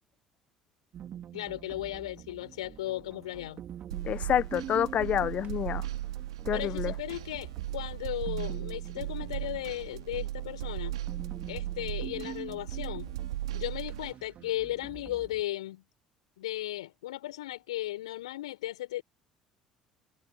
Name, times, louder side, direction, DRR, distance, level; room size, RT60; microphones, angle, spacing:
sound 1, 0.9-15.4, right 10 dB, 45° right, 3.2 m, -46 dB
voice 1, 1.3-3.6 6.5-11.0 11.5-13.1 13.5-15.8 16.4-19.0, left 15 dB, 70° left, 5.2 m, -36 dB
sound 2, 3.9-14.1, right 14 dB, 75° right, 3.3 m, -37 dB
voice 2, 4.0-5.9 6.4-6.9, left 10 dB, 45° left, 1.3 m, -28 dB
figure-of-eight pair, 60°, 3 cm